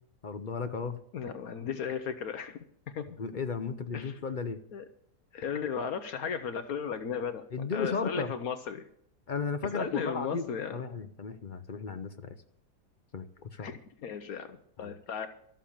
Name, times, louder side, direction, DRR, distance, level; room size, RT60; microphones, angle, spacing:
voice 1, 0.2-1.0 3.2-4.6 7.5-8.3 9.3-12.4 13.1-13.3 13.5-13.7 14.8-14.9, left 5 dB, 50° left, 9 dB, 0.6 m, -35 dB
voice 2, 1.1-2.6 2.9-3.1 3.9-4.2 4.7-4.8 5.3-7.4 7.7-8.9 9.7-10.8 13.6-13.7 14.0-15.3, left 7 dB, 65° left, 10 dB, 1.2 m, -35 dB
13.5 x 7.5 x 8.6 m, 0.69 s
omnidirectional pair, 1.7 m